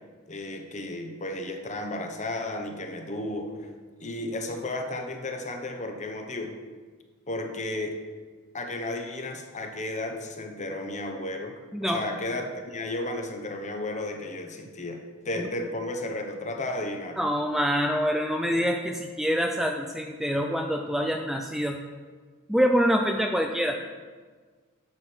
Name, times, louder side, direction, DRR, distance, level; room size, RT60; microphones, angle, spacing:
voice 1, 0.3-3.7 4.0-6.5 7.3-8.0 8.5-15.0 15.2-17.2, left 2 dB, 35° left, 4 dB, 1.1 m, -33 dB
voice 2, 17.2-21.8 22.5-23.8, equal, ahead, 3 dB, 0.4 m, -25 dB
9.7 x 6.3 x 6.1 m, 1.5 s
head